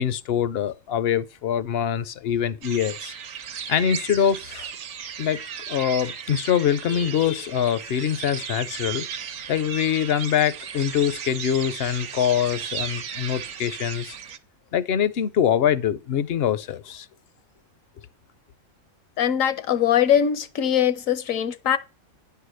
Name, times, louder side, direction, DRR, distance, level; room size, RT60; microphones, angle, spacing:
voice 1, 0.0-3.1 3.7-4.7 5.2-5.4 5.7-9.1 9.5-14.1 14.7-17.1, left 9 dB, 60° left, 0.7 m, -24 dB
sound 1, 2.6-14.4, right 8 dB, 75° right, 1.2 m, -35 dB
voice 2, 19.2-21.8, left 9 dB, 75° left, 1.2 m, -21 dB
10.5 x 4.8 x 6.3 m
omnidirectional pair, 1.4 m